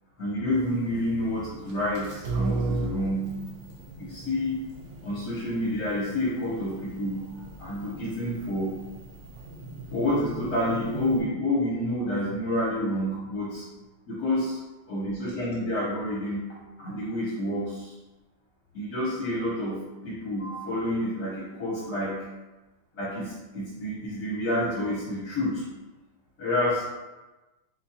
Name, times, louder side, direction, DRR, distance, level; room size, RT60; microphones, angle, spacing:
voice 1, 0.2-3.3 4.0-4.6 5.0-7.2 7.6-8.7 9.9-13.6 14.1-14.6 14.9-17.9 18.7-22.2 22.9-25.6 26.4-26.9, left 1 dB, 55° left, -8 dB, 1.4 m, -29 dB
sound 1, 0.5-11.2, right 2 dB, 60° right, 1.1 m, -37 dB
4.2 x 2.5 x 4.1 m, 1.1 s
omnidirectional pair, 2.1 m